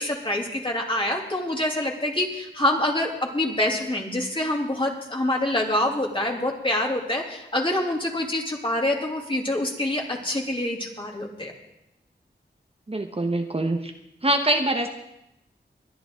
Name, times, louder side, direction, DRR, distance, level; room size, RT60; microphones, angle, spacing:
voice 1, 0.0-11.5, left 1 dB, 30° left, 0 dB, 3.0 m, -26 dB
voice 2, 12.9-13.9 14.2-14.9, right 1 dB, 30° right, 4 dB, 1.2 m, -24 dB
22.0 x 11.0 x 3.8 m, 0.86 s
wide cardioid pair, 60°, 19 cm